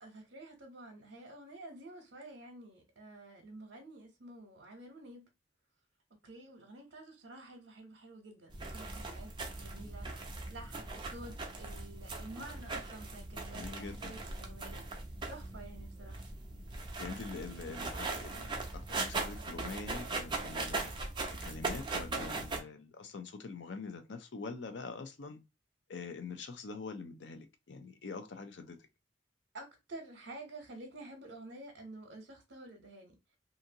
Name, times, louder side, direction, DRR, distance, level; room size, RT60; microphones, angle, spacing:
voice 1, 0.0-5.3 6.1-14.8 15.3-16.2 29.5-33.4, right 2 dB, 75° right, 0.7 m, -50 dB
sound 1, 8.5-22.6, right 3 dB, 25° right, 0.6 m, -40 dB
voice 2, 13.5-14.1 17.0-20.9 21.4-25.4 25.9-28.8, left 4 dB, 70° left, 0.5 m, -44 dB
2.7 x 2.6 x 2.6 m
head